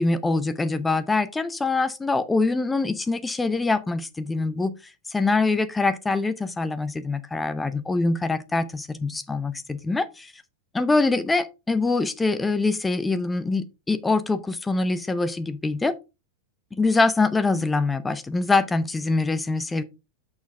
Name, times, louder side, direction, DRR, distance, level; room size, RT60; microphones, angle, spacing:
voice 1, 0.0-4.7 5.1-10.3 10.7-15.9 16.8-19.8, left 3 dB, 10° left, 0.6 m, -24 dB
6.2 x 6.1 x 3.5 m
figure-of-eight pair, 90°, 0 cm